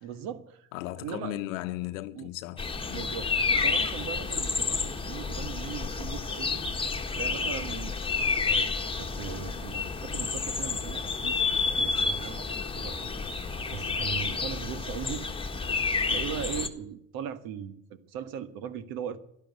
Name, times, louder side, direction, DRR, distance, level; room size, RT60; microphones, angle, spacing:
voice 1, 0.0-0.7 1.0-1.4 2.1-2.3 2.9-6.6 7.1-13.0 13.3-15.3 16.1-19.2, right 8 dB, 65° right, 1.7 m, -39 dB
voice 2, 0.7-3.2, left 15 dB, 85° left, 1.0 m, -36 dB
sound 1, 2.6-16.7, left 4 dB, 15° left, 1.6 m, -30 dB
12.5 x 12.0 x 9.6 m
supercardioid pair, 95°, 38 cm